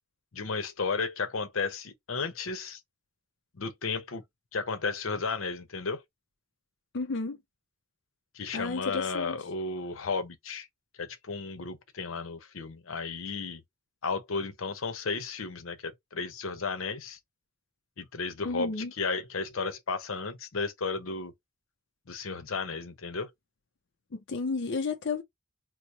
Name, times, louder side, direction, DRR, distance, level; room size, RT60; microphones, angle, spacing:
voice 1, 0.3-2.8 3.5-4.2 4.5-6.0 8.3-10.7 11.0-13.6 14.0-17.2 18.0-21.3 22.1-23.3, left 4 dB, 85° left, 0.8 m, -33 dB
voice 2, 6.9-7.4 8.5-9.4 18.4-18.9 24.1-25.2, left 4 dB, 60° left, 0.5 m, -32 dB
3.1 x 2.0 x 4.0 m
head